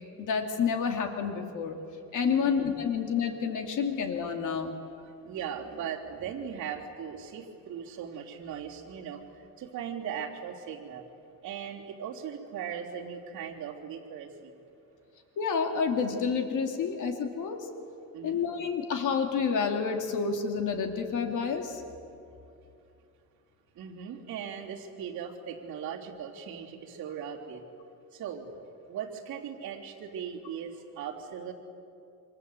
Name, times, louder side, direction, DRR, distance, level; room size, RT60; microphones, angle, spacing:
voice 1, 0.2-1.8 2.1-4.7 15.4-17.7 18.2-21.8, left 6 dB, 60° left, 4 dB, 2.6 m, -29 dB
voice 2, 5.0-11.0 11.4-14.5 18.1-18.4 23.7-27.6 28.1-28.5 28.9-31.5, right 8 dB, 55° right, -6 dB, 3.4 m, -39 dB
28.0 x 26.0 x 8.2 m, 2.6 s
cardioid pair, 170°, 35 cm